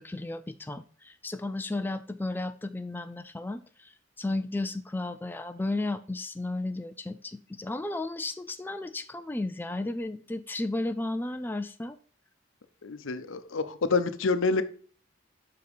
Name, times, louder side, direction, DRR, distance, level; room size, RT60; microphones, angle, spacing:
voice 1, 0.0-12.0, left 2 dB, 10° left, 8 dB, 0.3 m, -34 dB
voice 2, 12.8-14.6, left 3 dB, 90° left, 11 dB, 0.7 m, -27 dB
5.7 x 5.0 x 5.2 m, 0.43 s
head